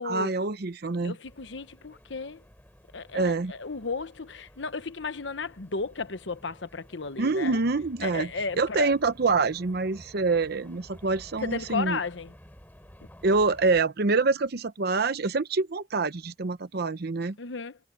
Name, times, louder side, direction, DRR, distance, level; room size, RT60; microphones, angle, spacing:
voice 1, 0.0-1.1 3.1-3.5 7.2-8.3 8.5-12.0 13.2-17.4, right 3 dB, 60° right, 0.8 m, -26 dB
voice 2, 1.0-2.4 2.9-7.6 8.0-8.9 11.4-12.3 17.4-17.8, left 4 dB, 75° left, 1.1 m, -34 dB
sound 1, 1.2-13.8, equal, 10° left, 6.9 m, -53 dB
head